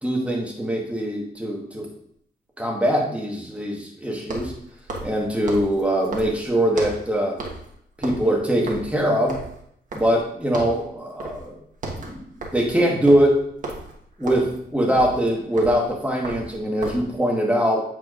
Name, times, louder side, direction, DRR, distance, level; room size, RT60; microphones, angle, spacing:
voice 1, 0.0-1.9 2.6-4.5 5.0-7.4 8.0-9.4 9.9-11.6 11.9-13.4 14.2-17.8, equal, 5° right, -1 dB, 1.4 m, -22 dB
sound 1, 0.9-1.0 4.2-7.1 7.4-7.7 8.0-10.3 10.5-10.8 11.2-11.5 11.7-17.1, right 2 dB, 50° right, 1.4 m, -34 dB
8.5 x 4.5 x 2.5 m, 0.70 s
cardioid pair, 100°, 17 cm